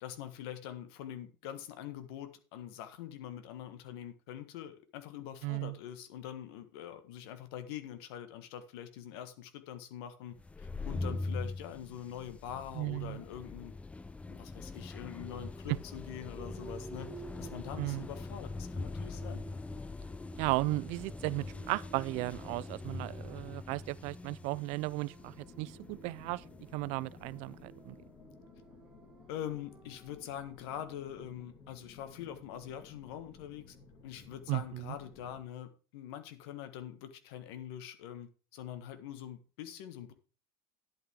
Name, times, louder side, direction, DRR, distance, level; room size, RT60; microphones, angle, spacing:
voice 1, 0.0-13.7 14.3-19.4 29.3-33.8 34.0-40.1, left 10 dB, 90° left, 1.5 m, -44 dB
voice 2, 5.4-5.8 12.7-13.2 15.7-15.8 17.8-18.0 20.4-26.4 26.7-28.0 34.5-34.9, right 22 dB, 70° right, 0.4 m, -35 dB
sound 1, 10.4-27.8, left 3 dB, 10° left, 0.4 m, -43 dB
sound 2, 16.4-30.6, right 4 dB, 10° right, 1.9 m, -54 dB
sound 3, 25.2-35.4, left 4 dB, 40° left, 2.9 m, -56 dB
10.5 x 8.6 x 3.6 m
cardioid pair, 130°, 13 cm